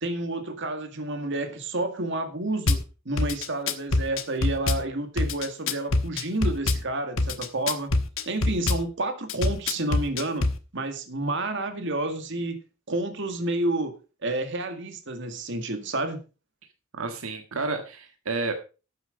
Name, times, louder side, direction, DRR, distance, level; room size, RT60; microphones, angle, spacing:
voice 1, 0.0-2.8 3.1-7.9 8.3-10.5 10.7-12.6 12.9-13.9 14.2-16.2, right 2 dB, 60° right, 2.0 m, -30 dB
Drum kit / Bass drum, 2.7-2.8 3.2-4.8 5.2-6.8 7.2-8.8 9.3-10.6, left 2 dB, 70° left, 1.2 m, -24 dB
voice 2, 16.9-18.5, right 3 dB, 80° right, 1.6 m, -30 dB
12.0 x 8.0 x 5.1 m
head